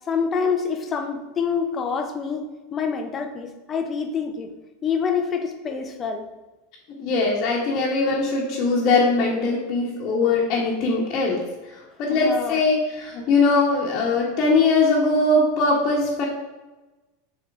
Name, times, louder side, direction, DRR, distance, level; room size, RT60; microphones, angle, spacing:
voice 1, 0.1-4.5 4.8-6.3 7.7-7.8 12.1-12.6, left 6 dB, 30° left, 6 dB, 0.9 m, -26 dB
voice 2, 7.0-11.4 12.0-16.2, left 3 dB, 45° left, -4 dB, 1.5 m, -21 dB
7.7 x 4.3 x 3.7 m, 1.1 s
hypercardioid pair, 90°, 0 cm